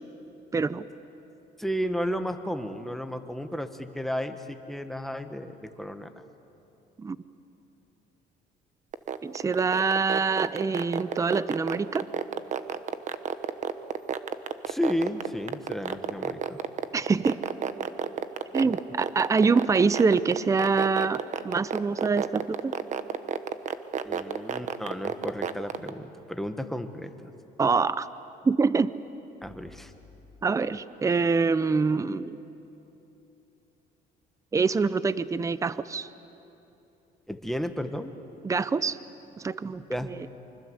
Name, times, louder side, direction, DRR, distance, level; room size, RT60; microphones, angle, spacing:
voice 1, 0.5-0.9 7.0-7.2 9.2-12.1 16.9-17.4 18.5-22.7 27.6-28.1 28.4-28.9 30.4-32.4 34.5-36.1 38.4-39.0 39.4-40.1, right 4 dB, 20° right, 15 dB, 0.6 m, -25 dB
voice 2, 1.6-6.2 14.7-16.6 18.6-18.7 24.0-27.3 29.4-29.9 37.3-38.1 39.7-40.1, equal, ahead, 7 dB, 1.5 m, -33 dB
sound 1, 8.9-25.9, right 8 dB, 45° right, 1.1 m, -29 dB
25.0 x 25.0 x 8.1 m, 3.0 s
cardioid pair, 110°, 17 cm